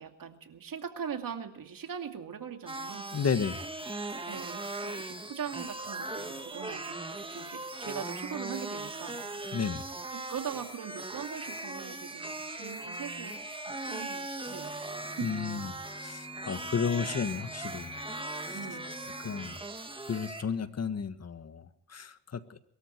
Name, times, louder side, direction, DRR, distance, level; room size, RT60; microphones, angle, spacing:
voice 1, 0.0-3.1 4.2-9.2 10.1-14.8 15.1-15.4 18.2-18.3 18.5-19.0, right 7 dB, 50° right, 6 dB, 2.5 m, -41 dB
sound 1, 2.7-20.4, right 2 dB, 10° right, 1.6 m, -39 dB
voice 2, 3.1-3.6 9.5-9.8 15.2-17.9 18.5-18.6 19.2-19.6 20.1-22.6, left 6 dB, 35° left, 11 dB, 1.7 m, -33 dB
sound 2, 14.4-19.6, left 2 dB, 5° left, 2.7 m, -50 dB
23.0 x 13.5 x 4.6 m, 0.74 s
cardioid pair, 80°, 44 cm